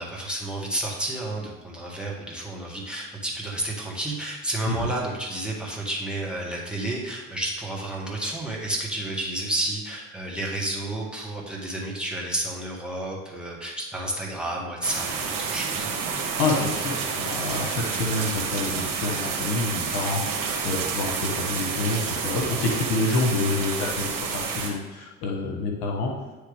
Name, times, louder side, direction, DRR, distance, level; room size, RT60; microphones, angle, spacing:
voice 1, 0.0-15.9, right 1 dB, ahead, -4 dB, 1.8 m, -31 dB
sound 1, 14.8-24.7, right 5 dB, 55° right, 1.4 m, -29 dB
voice 2, 16.4-26.1, left 3 dB, 65° left, 0 dB, 1.2 m, -27 dB
9.6 x 3.3 x 3.5 m, 1.3 s
hypercardioid pair, 60°, 41 cm